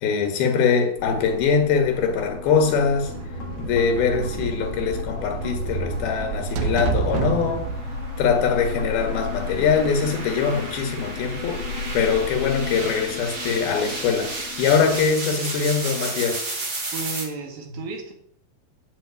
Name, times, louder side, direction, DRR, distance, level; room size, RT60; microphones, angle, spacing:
voice 1, 0.0-3.1 3.6-7.7 8.2-11.6 11.9-16.4, left 6 dB, 80° left, 4 dB, 3.8 m, -22 dB
sound 1, 1.0-15.0, left 4 dB, 50° left, 2.2 m, -35 dB
sound 2, 2.4-9.2, right 6 dB, 85° right, 2.9 m, -30 dB
sound 3, 5.2-17.2, right 2 dB, 30° right, 2.3 m, -34 dB
voice 2, 16.9-18.1, right 3 dB, 70° right, 3 dB, 3.7 m, -33 dB
8.8 x 7.8 x 8.4 m, 0.67 s
omnidirectional pair, 4.4 m